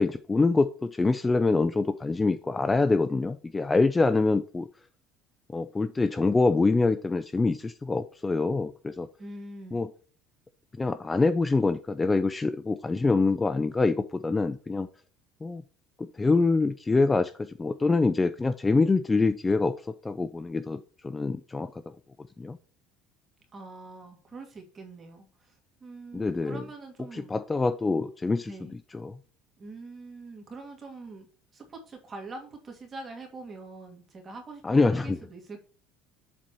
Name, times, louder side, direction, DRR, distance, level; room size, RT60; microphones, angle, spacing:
voice 1, 0.0-4.7 5.5-9.1 9.7-9.9 10.7-14.9 15.4-15.6 16.0-22.6 26.1-26.6 27.1-28.5 28.9-29.2 34.6-35.2, left 3 dB, 15° left, 11 dB, 0.4 m, -25 dB
voice 2, 9.2-9.8 23.5-27.3 28.4-28.8 29.6-31.3 31.5-35.6, right 3 dB, 25° right, 2 dB, 2.5 m, -44 dB
7.5 x 4.3 x 4.5 m, 0.41 s
cardioid pair, 135°, 0 cm